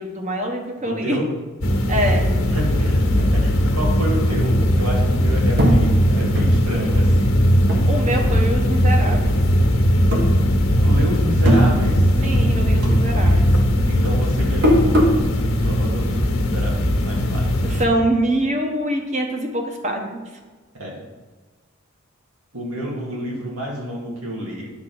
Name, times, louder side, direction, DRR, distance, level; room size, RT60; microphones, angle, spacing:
voice 1, 0.0-1.2 1.9-2.3 7.9-9.4 12.2-13.5 17.7-20.1 24.4-24.5, right 1 dB, 35° right, 2 dB, 1.2 m, -24 dB
voice 2, 0.8-1.4 2.5-7.4 10.8-12.1 13.2-13.4 13.9-17.7 20.7-21.0 22.5-24.7, equal, 80° right, -3 dB, 2.4 m, -29 dB
sound 1, 1.6-17.9, equal, 65° left, 1.2 m, -18 dB
sound 2, 5.6-8.4 8.8-9.6 10.0-11.0 11.2-12.5 12.8-15.3, equal, 50° right, 1.3 m, -21 dB
9.5 x 3.7 x 6.2 m, 1.3 s
head